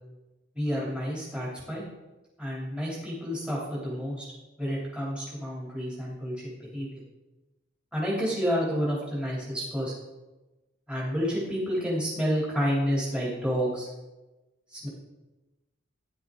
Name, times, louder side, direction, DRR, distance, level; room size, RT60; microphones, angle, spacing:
voice 1, 0.5-1.8 2.4-4.3 4.6-6.3 6.7-6.9 7.9-9.9 10.9-13.9 14.7-14.9, equal, 5° right, -6 dB, 3.0 m, -29 dB
14.5 x 10.5 x 3.8 m, 1.1 s
head